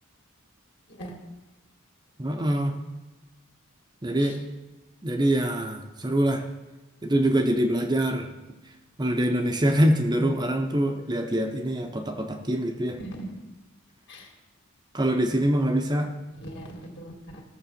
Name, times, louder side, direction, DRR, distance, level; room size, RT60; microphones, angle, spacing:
voice 1, 2.2-2.7 4.0-4.4 5.0-6.4 7.0-8.3 9.0-13.0 14.9-16.1, right 1 dB, 20° right, 4 dB, 0.8 m, -24 dB
voice 2, 13.0-13.3 14.1-14.3 16.4-17.4, right 1 dB, 55° left, 1 dB, 2.5 m, -40 dB
15.5 x 6.8 x 6.9 m, 1.1 s
head